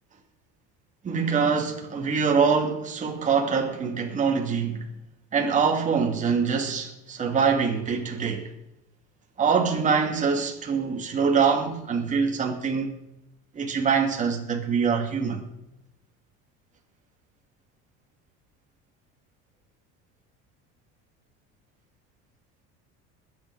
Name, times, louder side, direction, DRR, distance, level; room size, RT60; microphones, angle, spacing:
voice 1, 1.0-4.9 5.3-8.5 9.4-12.9 13.5-15.4, right 5 dB, 25° right, 2.5 m, -24 dB
21.0 x 8.9 x 4.9 m
cardioid pair, 155°, 30 cm